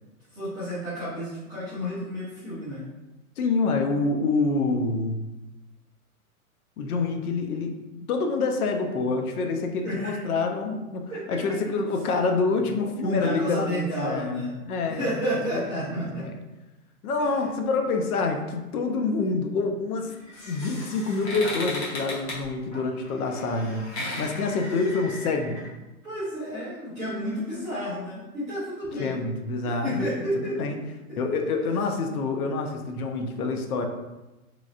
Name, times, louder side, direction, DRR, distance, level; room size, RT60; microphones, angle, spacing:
voice 1, 0.3-2.9 9.8-10.2 11.1-11.6 13.0-14.5 14.9-16.3 17.2-17.4 26.0-29.2 29.6-30.6, equal, 10° right, -16 dB, 0.3 m, -31 dB
voice 2, 3.4-5.3 6.8-7.8 8.1-15.0 15.5-15.6 16.2-16.3 17.0-20.1 20.5-23.8 24.2-25.6 29.0-30.1 30.3-30.8 31.2-33.9, left 3 dB, 80° left, 4 dB, 0.6 m, -27 dB
sound 1, 20.1-25.7, left 1 dB, 45° left, 1.1 m, -36 dB
3.1 x 2.4 x 2.4 m, 1.1 s
hypercardioid pair, 135°, 44 cm